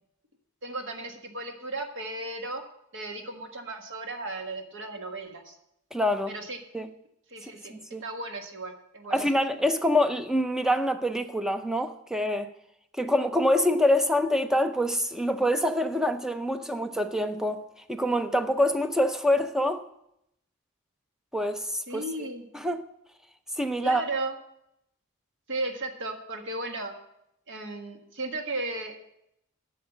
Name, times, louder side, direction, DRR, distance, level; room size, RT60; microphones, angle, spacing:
voice 1, 0.6-2.6 2.9-5.6 6.3-6.6 7.3-9.2 21.9-22.5 23.8-24.3 25.5-26.9 27.5-28.9, right 2 dB, 65° right, 1.6 m, -35 dB
voice 2, 5.9-6.3 6.7-6.9 7.7-8.0 9.1-12.5 13.0-19.8 21.3-22.0 22.5-22.8 23.6-24.0, left 1 dB, 5° right, 0.6 m, -25 dB
8.4 x 6.5 x 7.9 m
head